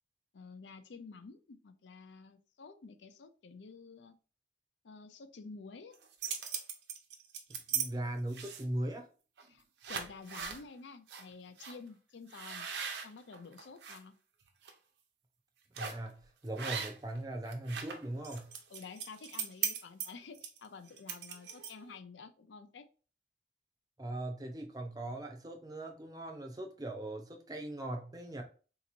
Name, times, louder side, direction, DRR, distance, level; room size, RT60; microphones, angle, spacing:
voice 1, 0.3-4.2 4.8-6.0 9.5-9.6 9.9-12.7 13.0-14.1 18.7-22.9, left 4 dB, 90° left, 0.5 m, -50 dB
sound 1, 5.9-7.9 8.3-8.8 9.4-9.5 9.8-10.6 11.1-11.2 11.6-11.8 12.3-14.0 14.4-14.7 15.8-16.1 16.6-17.2 17.4-21.9, right 7 dB, 80° right, 0.7 m, -39 dB
voice 2, 7.7-9.1 15.8-18.5 24.0-28.4, right 1 dB, 20° right, 0.6 m, -39 dB
3.9 x 2.9 x 2.5 m
head